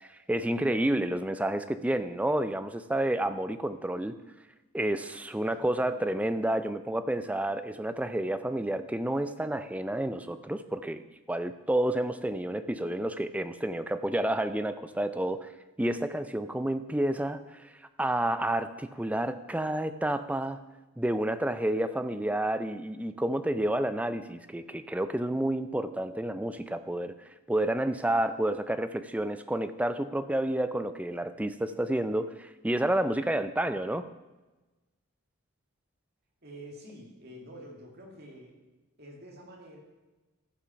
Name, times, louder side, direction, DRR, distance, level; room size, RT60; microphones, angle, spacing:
voice 1, 0.0-4.2 4.7-11.0 11.3-15.5 15.8-17.6 18.0-20.6 21.0-27.1 27.5-34.0, right 1 dB, 5° right, 11 dB, 0.4 m, -30 dB
voice 2, 5.5-6.1 36.4-38.6 39.0-39.8, equal, 50° right, 0 dB, 2.4 m, -48 dB
14.0 x 5.9 x 5.8 m, 1.1 s
head